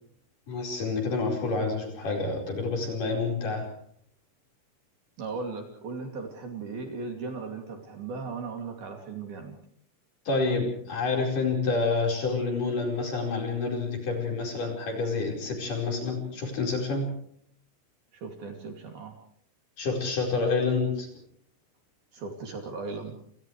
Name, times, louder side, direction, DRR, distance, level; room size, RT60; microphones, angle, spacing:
voice 1, 0.5-3.7 10.3-17.1 19.8-21.1, left 3 dB, 40° left, 2 dB, 6.0 m, -28 dB
voice 2, 5.2-9.6 18.1-19.2 22.1-23.2, right 4 dB, 50° right, 3 dB, 4.1 m, -37 dB
29.0 x 28.0 x 3.3 m, 0.63 s
omnidirectional pair, 5.9 m